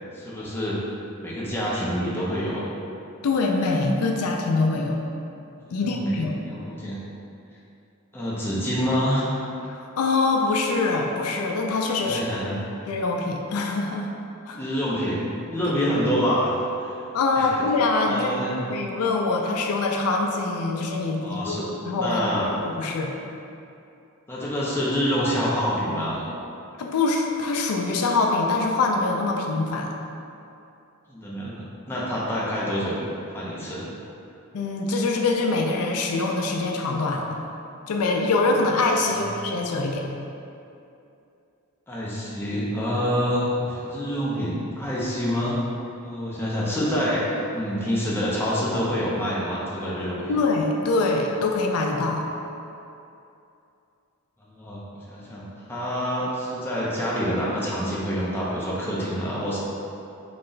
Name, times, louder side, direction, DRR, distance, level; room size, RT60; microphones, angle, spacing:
voice 1, 0.1-0.8 1.2-2.7 5.6-7.0 8.1-9.2 12.0-12.6 14.6-17.0 17.4-17.6 18.0-18.6 21.2-21.7 22.0-22.5 24.3-26.2 31.1-33.0 33.3-33.9 39.0-39.3 41.9-45.6 46.0-47.3 47.5-50.3 54.5-54.8 55.1-59.6, equal, 10° left, -7 dB, 0.5 m, -27 dB
voice 2, 3.2-5.0 5.7-6.4 9.7-12.2 12.9-14.1 14.5-14.6 15.7-15.8 17.1-18.4 18.7-22.2 22.6-23.1 26.8-29.9 34.5-37.4 37.9-40.1 50.3-52.3, left 3 dB, 80° left, 1 dB, 0.4 m, -24 dB
3.9 x 2.2 x 3.8 m, 2.7 s
head